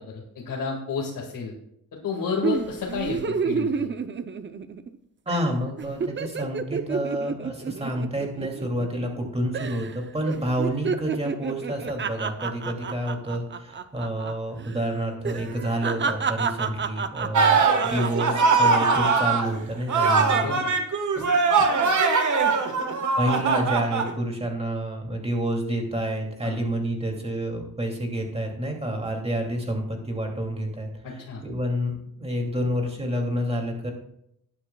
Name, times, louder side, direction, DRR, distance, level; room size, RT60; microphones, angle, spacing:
voice 1, 0.1-1.5 1.9-3.9 20.4-20.7 26.4-26.6 31.0-31.4, left 5 dB, 70° left, -2 dB, 2.0 m, -31 dB
sound 1, 2.4-5.0 5.3-5.5 5.8-9.2 9.5-10.0 10.3-14.3 14.6-14.8 15.2-19.3 19.8-20.2, right 5 dB, 35° right, 0.6 m, -30 dB
voice 2, 5.3-20.8 21.2-21.6 23.2-33.9, equal, 15° right, 1 dB, 2.6 m, -29 dB
sound 2, 17.3-19.5 19.9-24.1, right 4 dB, 60° right, 1.5 m, -21 dB
19.0 x 9.8 x 2.3 m, 0.76 s
wide cardioid pair, 125°, 34 cm